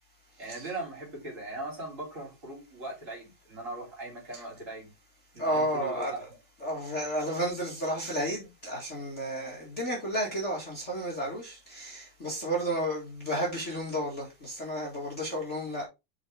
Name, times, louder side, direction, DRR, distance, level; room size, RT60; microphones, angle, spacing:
voice 1, 0.4-4.9 5.3-6.2, right 2 dB, 20° right, 3.2 m, -39 dB
voice 2, 5.4-6.2 6.6-15.8, equal, 25° left, 1.6 m, -32 dB
7.0 x 5.2 x 3.4 m
omnidirectional pair, 4.2 m